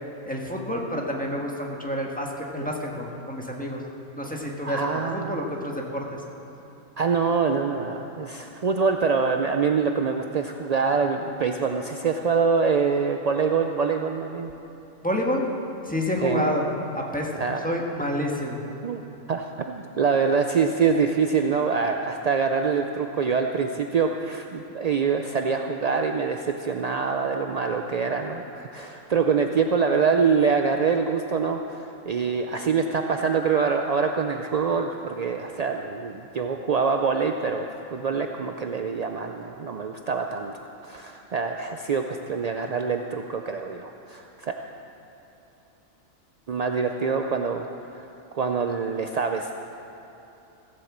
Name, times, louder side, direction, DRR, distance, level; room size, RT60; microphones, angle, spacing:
voice 1, 0.2-3.8 4.2-6.2 15.0-15.5 15.8-16.7 16.9-17.3 17.6-18.6, equal, 5° left, -1 dB, 1.4 m, -28 dB
voice 2, 4.6-5.4 7.0-14.5 16.2-16.5 17.4-17.6 18.8-19.0 19.3-44.5 46.5-47.7 48.0-48.1 48.3-49.5, right 5 dB, 60° right, 4 dB, 0.4 m, -25 dB
16.0 x 8.0 x 7.3 m, 3.0 s
omnidirectional pair, 1.3 m